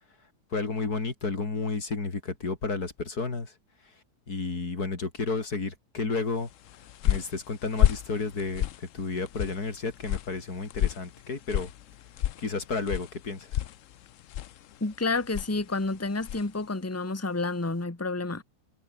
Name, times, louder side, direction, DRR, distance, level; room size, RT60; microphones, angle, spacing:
voice 1, 0.5-3.5 4.3-6.5 7.0-11.7 12.4-13.6, left 4 dB, 90° left, 3.9 m, -32 dB
sound 1, 6.5-16.6, left 12 dB, 65° left, 1.0 m, -32 dB
voice 2, 14.8-18.4, left 3 dB, 10° left, 1.5 m, -29 dB
omnidirectional pair, 1.6 m